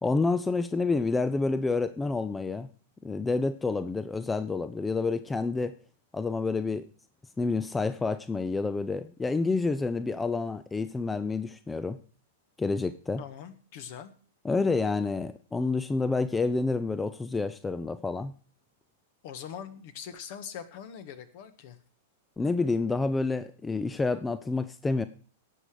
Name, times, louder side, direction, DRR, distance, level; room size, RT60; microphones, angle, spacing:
voice 1, 0.0-2.7 3.0-5.7 6.1-6.9 7.4-12.0 12.6-13.2 14.4-18.3 22.4-25.0, left 3 dB, 10° left, 13 dB, 0.6 m, -28 dB
voice 2, 13.2-14.1 19.2-21.8, left 8 dB, 55° left, 10 dB, 1.6 m, -42 dB
17.0 x 6.2 x 5.0 m, 0.40 s
hypercardioid pair, 100°, 0 cm